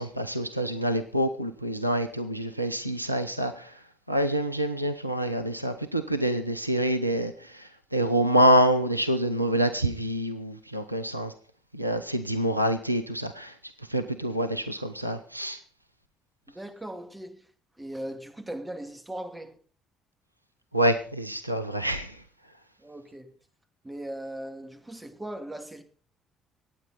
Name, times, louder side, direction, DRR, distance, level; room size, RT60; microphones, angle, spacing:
voice 1, 0.0-3.7 4.1-7.6 7.9-11.3 11.7-13.5 13.9-15.6 20.7-22.1, equal, 90° right, 0.6 m, -26 dB
voice 2, 16.5-17.4 17.8-19.6 22.8-23.3 23.8-25.8, right 1 dB, 15° right, 2.7 m, -38 dB
24.0 x 9.1 x 4.0 m
figure-of-eight pair, 45°, 0 cm